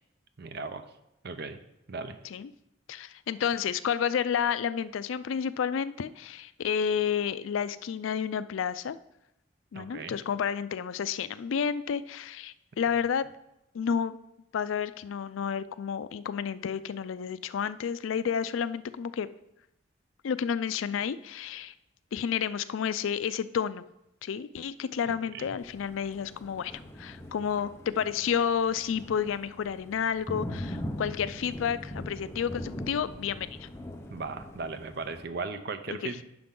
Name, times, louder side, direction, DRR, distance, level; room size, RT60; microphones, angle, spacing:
voice 1, 0.4-0.9 1.2-1.6 1.9-2.2 9.7-10.2 25.1-25.5 34.1-36.2, right 4 dB, 55° right, 9 dB, 0.6 m, -37 dB
voice 2, 2.9-9.0 9.7-13.3 13.7-14.2 14.5-19.3 20.2-21.7 22.1-23.8 24.2-33.7 36.0-36.2, left 7 dB, 75° left, 15 dB, 0.4 m, -30 dB
Thunder, 25.6-35.3, left 1 dB, 15° left, 0.7 m, -41 dB
9.7 x 6.0 x 3.7 m, 0.86 s
head